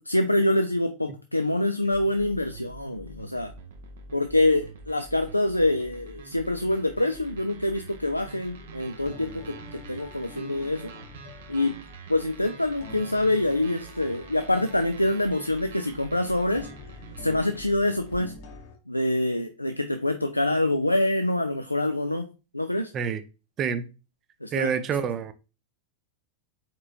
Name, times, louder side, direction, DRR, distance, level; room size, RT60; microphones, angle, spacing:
voice 1, 0.0-3.5 4.1-10.9 11.5-11.8 12.1-16.7 17.2-18.3 18.9-22.9 24.4-24.7, left 1 dB, 85° left, 0.3 m, -25 dB
sound 1, 1.9-18.6, right 4 dB, 60° right, 0.7 m, -45 dB
sound 2, 8.6-18.8, left 5 dB, 50° left, 0.9 m, -47 dB
voice 2, 24.5-25.3, right 7 dB, 30° right, 0.5 m, -27 dB
4.4 x 4.2 x 2.7 m
figure-of-eight pair, 90°, 0 cm